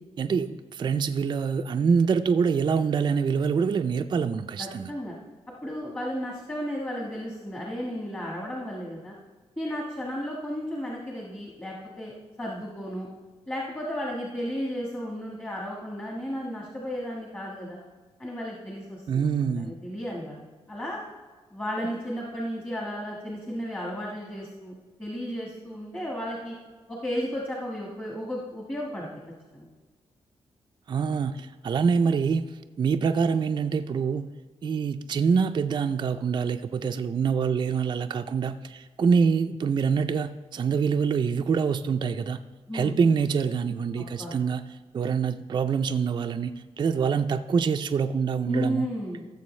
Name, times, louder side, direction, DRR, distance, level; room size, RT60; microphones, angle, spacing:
voice 1, 0.2-4.9 19.1-19.7 30.9-32.4 32.8-34.3 34.6-42.4 42.7-44.6 44.9-48.9, right 6 dB, 40° right, 7 dB, 0.3 m, -25 dB
voice 2, 4.6-5.1 5.6-9.1 9.6-13.1 13.5-17.8 18.2-20.4 20.7-21.0 21.5-26.5 26.9-29.1 29.5-29.7 42.7-42.9 44.2-44.3 48.5-49.2, equal, 15° left, -3 dB, 1.4 m, -34 dB
15.5 x 6.9 x 3.2 m, 1.4 s
wide cardioid pair, 130°, 12 cm